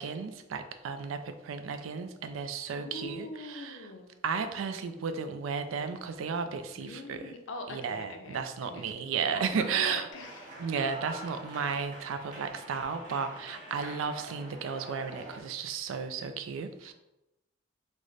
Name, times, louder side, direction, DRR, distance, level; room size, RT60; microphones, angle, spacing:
voice 1, 0.0-3.9 4.2-7.3 7.7-10.1 10.6-16.9, right 6 dB, 90° right, 9 dB, 0.3 m, -34 dB
voice 2, 2.7-4.1 6.8-8.9 9.3-10.6, left 2 dB, 75° left, 4 dB, 0.5 m, -42 dB
sound 1, 10.1-15.4, right 1 dB, 40° right, 0.9 m, -46 dB
3.2 x 2.0 x 3.8 m, 0.94 s
head